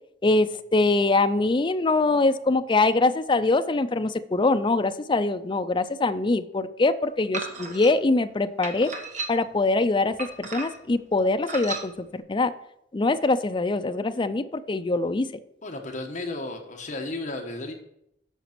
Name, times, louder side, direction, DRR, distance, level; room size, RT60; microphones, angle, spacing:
voice 1, 0.2-8.9 9.3-12.5 12.9-15.3, left 3 dB, 25° left, 9 dB, 0.4 m, -23 dB
sound 1, 7.3-7.9 8.6-9.6 10.2-10.9 11.4-11.9, right 3 dB, 40° right, 1.2 m, -34 dB
voice 2, 15.6-17.7, left 2 dB, 45° left, 3 dB, 1.2 m, -33 dB
8.1 x 6.0 x 5.9 m, 0.77 s
head